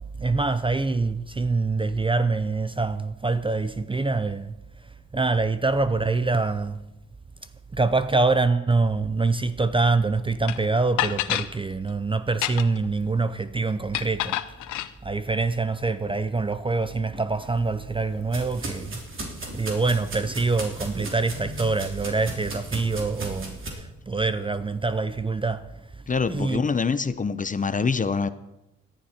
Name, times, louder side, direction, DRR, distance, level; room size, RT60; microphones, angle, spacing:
voice 1, 0.2-4.6 5.1-6.8 7.7-14.4 15.0-19.0 19.5-25.7 26.3-26.6, right 3 dB, 15° right, 0.6 m, -25 dB
sound 1, 10.5-10.6 11.0-11.5 12.3-12.9 13.9-14.9, left 14 dB, 80° left, 0.7 m, -27 dB
sound 2, 17.4-23.7, right 2 dB, 40° right, 3.3 m, -36 dB
voice 2, 26.1-28.3, left 5 dB, 25° left, 0.7 m, -25 dB
17.5 x 11.5 x 4.4 m
cardioid pair, 90°, 30 cm